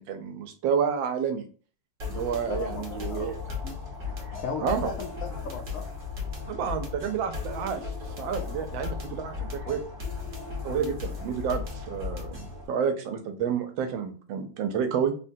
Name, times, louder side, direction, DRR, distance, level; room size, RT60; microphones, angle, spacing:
voice 1, 0.0-1.5 2.1-3.4 4.6-4.9 6.5-7.9 8.2-9.8 10.6-15.1, right 7 dB, 85° right, 7 dB, 1.4 m, -30 dB
sound 1, 2.0-12.7, left 5 dB, 40° right, 0.8 m, -36 dB
voice 2, 2.5-3.7 4.4-5.8, left 4 dB, 85° left, 2 dB, 0.7 m, -36 dB
3.6 x 2.2 x 2.6 m, 0.40 s
omnidirectional pair, 2.0 m